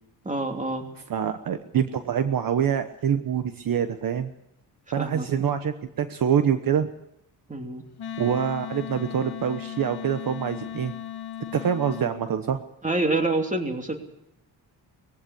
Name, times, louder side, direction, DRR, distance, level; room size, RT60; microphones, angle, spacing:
voice 1, 0.2-0.9 5.0-5.5 7.5-7.8 12.8-14.0, right 2 dB, 20° right, 4 dB, 2.9 m, -27 dB
voice 2, 1.1-4.3 4.9-6.9 8.2-10.9 11.5-12.6, right 8 dB, 55° right, 9 dB, 1.2 m, -25 dB
Wind instrument woodwind instrument, 8.0-12.1, left 10 dB, 65° left, 1.6 m, -36 dB
20.5 x 16.0 x 8.5 m, 0.80 s
cardioid pair, 120°, 41 cm